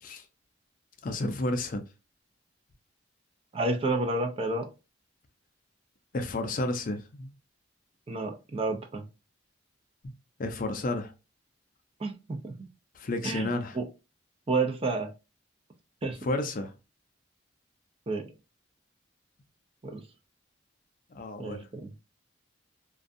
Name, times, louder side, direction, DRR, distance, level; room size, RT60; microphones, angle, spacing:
voice 1, 1.0-1.8 6.1-7.3 10.4-11.1 13.0-13.8 16.2-16.7 21.1-21.7, left 2 dB, 45° left, 0.4 m, -31 dB
voice 2, 3.5-4.7 8.1-9.0 12.0-12.7 13.2-13.9 14.5-15.1 16.0-16.2 18.1-18.3 19.8-20.0 21.4-21.9, right 3 dB, 30° right, 0.4 m, -30 dB
2.5 x 2.2 x 2.5 m
head